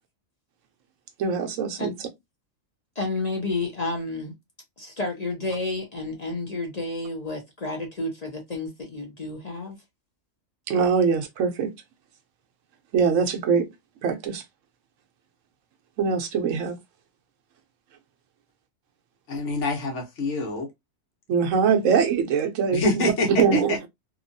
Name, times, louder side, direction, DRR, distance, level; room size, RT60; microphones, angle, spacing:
voice 1, 1.2-1.9 10.7-11.7 12.9-13.7 14.0-14.4 16.0-16.8 21.3-23.9, right 6 dB, 75° right, 1.0 m, -23 dB
voice 2, 3.0-4.3 4.8-9.8, left 2 dB, 40° left, 0.6 m, -30 dB
voice 3, 19.3-20.7 22.7-23.9, left 2 dB, 65° left, 1.2 m, -26 dB
2.8 x 2.2 x 2.6 m
omnidirectional pair, 1.4 m